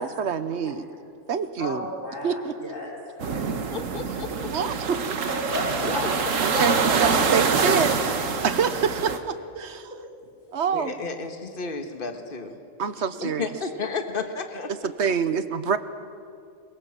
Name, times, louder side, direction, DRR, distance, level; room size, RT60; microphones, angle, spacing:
voice 1, 0.2-0.9 1.3-1.9 2.2-2.6 4.5-5.2 6.4-8.1 8.4-9.9 10.5-10.9 12.8-13.5 14.8-15.8, right 6 dB, 65° right, 12 dB, 1.2 m, -26 dB
voice 2, 1.6-3.5 5.3-6.0 6.5-7.9 9.9-10.0, left 1 dB, 90° left, -3 dB, 4.8 m, -32 dB
sound 1, 3.2-9.2, right 5 dB, 90° right, 1.6 m, -25 dB
voice 3, 3.7-4.7 5.8-5.9 10.7-12.6 13.2-14.9, left 4 dB, 45° left, 6 dB, 1.7 m, -33 dB
22.0 x 22.0 x 7.5 m, 2.4 s
omnidirectional pair, 1.3 m